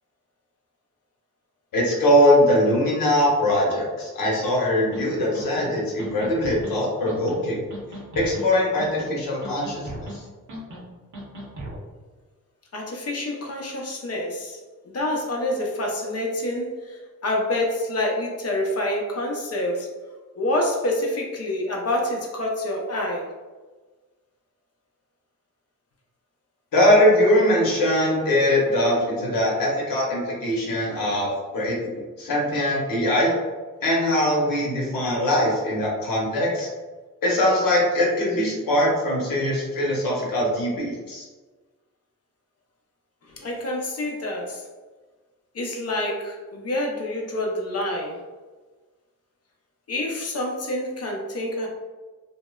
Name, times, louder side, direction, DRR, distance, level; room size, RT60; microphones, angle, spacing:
voice 1, 1.7-7.6 8.1-9.9 26.7-31.8 32.2-33.3 33.8-36.7 37.2-41.3, left 1 dB, 85° left, -4 dB, 0.9 m, -21 dB
sound 1, 4.9-5.0 5.3-5.7 6.0-6.7 7.1-7.4 7.7-8.5 8.8-9.2 9.4-10.2 10.5-10.8 11.1-11.8, right 1 dB, 60° right, 0.8 m, -37 dB
voice 2, 12.7-14.6 14.9-19.9 20.4-23.3 43.3-44.6 45.5-48.2 49.9-51.7, left 1 dB, 50° left, 0 dB, 0.6 m, -27 dB
2.7 x 2.0 x 2.2 m, 1.3 s
cardioid pair, 60°, 33 cm